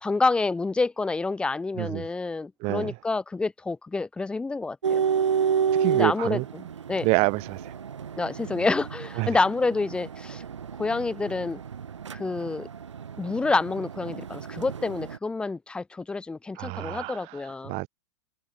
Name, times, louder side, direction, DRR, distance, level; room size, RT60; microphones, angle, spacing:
voice 1, 0.0-5.0 5.9-6.6 6.9-7.1 8.2-10.4 10.8-11.6 12.1-12.7 13.2-17.7, left 3 dB, 5° left, 0.3 m, -28 dB
voice 2, 2.6-2.9 5.8-6.4 7.0-7.7 9.2-9.4 16.6-17.9, right 26 dB, 40° right, 0.8 m, -28 dB
sound 1, 4.8-15.2, right 7 dB, 80° right, 1.0 m, -31 dB
figure-of-eight pair, 100°, 15 cm